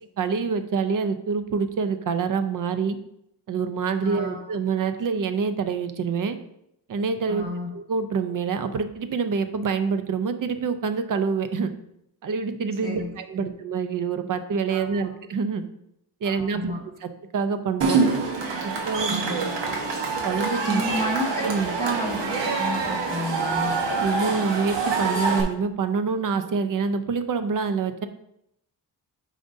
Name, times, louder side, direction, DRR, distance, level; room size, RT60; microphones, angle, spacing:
voice 1, 0.2-3.0 3.5-6.4 6.9-7.4 7.7-11.7 12.2-15.6 16.2-16.7 17.0-18.0 18.6-19.5 20.2-20.8 21.4-21.7 23.9-28.1, right 5 dB, 50° right, 9 dB, 0.6 m, -26 dB
voice 2, 4.0-4.5 7.3-7.7 12.8-13.4 14.7-14.9 16.2-16.8 19.1-19.5 20.6-21.5 21.7-23.8, equal, 20° right, -5 dB, 2.1 m, -31 dB
Cheering / Crowd, 17.8-25.4, right 4 dB, 80° right, 1.2 m, -26 dB
8.9 x 5.0 x 2.6 m, 0.77 s
wide cardioid pair, 165°, 43 cm